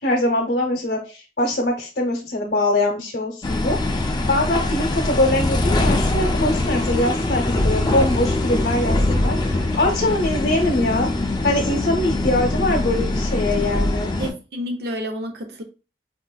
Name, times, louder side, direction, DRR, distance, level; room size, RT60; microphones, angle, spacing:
voice 1, 0.0-11.1 11.4-14.1, left 1 dB, 70° left, 0.7 m, -23 dB
sound 1, 3.4-14.3, left 2 dB, 25° left, 0.3 m, -22 dB
voice 2, 14.2-15.6, equal, 60° right, 0.4 m, -29 dB
4.3 x 2.4 x 2.2 m
head